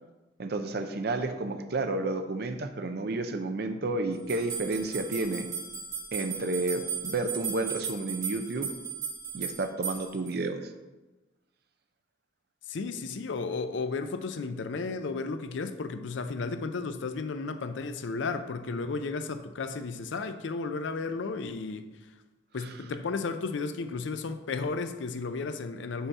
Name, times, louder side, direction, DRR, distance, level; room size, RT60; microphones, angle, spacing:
voice 1, 0.4-5.5 6.1-8.7 9.3-10.7, right 2 dB, 55° right, 0.6 m, -31 dB
sound 1, 4.3-10.3, right 7 dB, 20° right, 2.1 m, -36 dB
voice 2, 12.7-21.9 22.5-26.1, left 4 dB, 70° left, 0.5 m, -33 dB
5.6 x 4.2 x 5.8 m
head